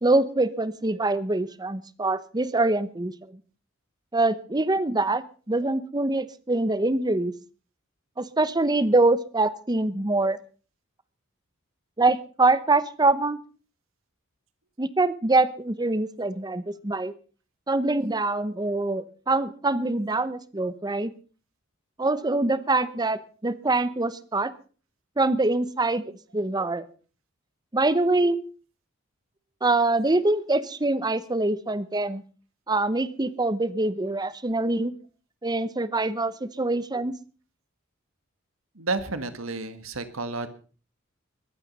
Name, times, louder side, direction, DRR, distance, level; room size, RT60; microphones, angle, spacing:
voice 1, 0.0-3.4 4.1-7.3 8.2-10.4 12.0-13.4 14.8-17.1 17.7-21.1 22.0-24.5 25.2-26.0 26.3-26.9 27.7-28.4 29.6-32.2 32.7-34.9 35.4-37.1, right 2 dB, 20° right, 15 dB, 0.9 m, -24 dB
voice 2, 38.8-40.5, right 3 dB, 75° right, 11 dB, 1.7 m, -31 dB
22.0 x 9.0 x 5.4 m, 0.39 s
head